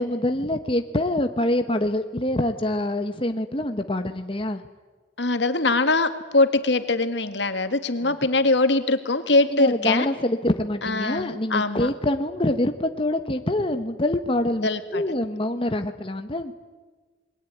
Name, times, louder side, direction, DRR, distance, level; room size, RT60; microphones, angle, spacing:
voice 1, 0.0-4.6 9.5-16.5, left 1 dB, 30° left, 7 dB, 1.2 m, -25 dB
voice 2, 5.2-10.1 10.8-11.9 14.6-15.0, left 2 dB, 70° left, 10 dB, 2.0 m, -22 dB
28.5 x 22.0 x 9.3 m, 1.3 s
head